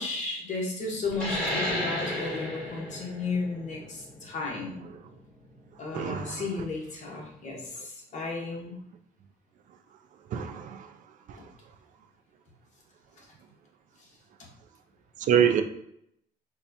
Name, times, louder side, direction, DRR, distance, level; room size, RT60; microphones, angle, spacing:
voice 1, 0.0-4.8 5.8-8.7 11.4-11.5, left 3 dB, 45° left, 1.1 m, -34 dB
sound 1, 1.1-6.3, left 1 dB, 5° left, 1.3 m, -34 dB
voice 2, 5.9-6.4 10.3-10.9 15.3-15.6, right 8 dB, 50° right, 0.4 m, -25 dB
4.0 x 2.2 x 2.7 m
cardioid pair, 110°, 17 cm